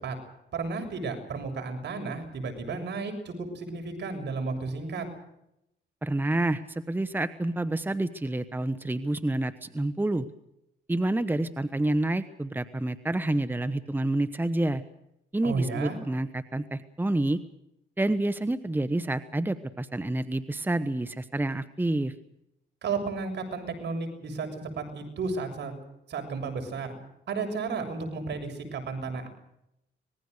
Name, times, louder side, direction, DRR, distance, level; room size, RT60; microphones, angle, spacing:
voice 1, 0.5-5.1 15.4-16.0 22.8-25.7 26.1-26.9 27.3-29.3, right 4 dB, 60° right, 5 dB, 7.0 m, -33 dB
voice 2, 6.0-10.3 10.9-14.8 15.3-17.4 18.0-22.1, right 1 dB, 10° right, 12 dB, 1.2 m, -28 dB
25.5 x 20.5 x 6.7 m, 0.82 s
cardioid pair, 90°, 20 cm